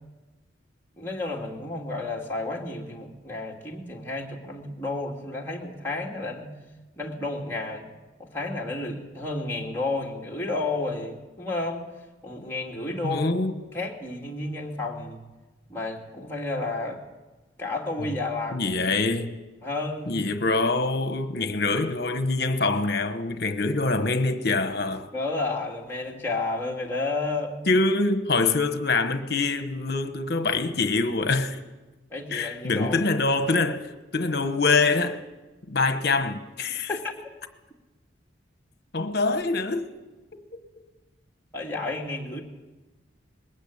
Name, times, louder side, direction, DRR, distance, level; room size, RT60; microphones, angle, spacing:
voice 1, 1.0-6.5 7.0-7.9 8.2-11.9 12.2-13.3 13.7-15.2 15.7-17.0 17.6-18.7 19.6-20.2 25.1-27.6 32.1-33.0 35.9-36.0 36.9-37.1 41.5-42.4, left 2 dB, 10° left, 2.4 m, -31 dB
voice 2, 13.0-13.5 18.5-19.4 20.1-25.1 27.7-31.6 32.3-33.9 34.1-35.2 35.7-36.9 38.9-39.9 40.3-40.4, left 3 dB, 55° left, 1.2 m, -24 dB
21.0 x 15.5 x 8.6 m
head